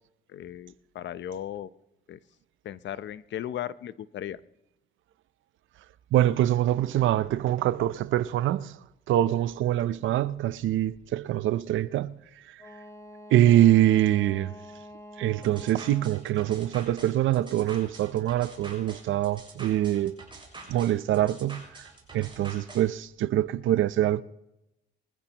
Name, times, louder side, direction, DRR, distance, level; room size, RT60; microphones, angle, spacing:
voice 1, 0.3-1.7 2.1-2.2 2.6-4.4, left 11 dB, 65° left, 0.7 m, -36 dB
voice 2, 6.1-8.8 9.1-12.2 13.3-14.5 15.2-20.1 20.7-21.7 22.1-24.2, right 13 dB, 80° right, 0.6 m, -24 dB
Wind instrument woodwind instrument, 12.6-16.3, equal, 15° left, 2.9 m, -46 dB
sound 1, 15.4-22.8, right 3 dB, 25° right, 6.9 m, -46 dB
23.5 x 14.5 x 3.0 m
cardioid pair, 90°, 20 cm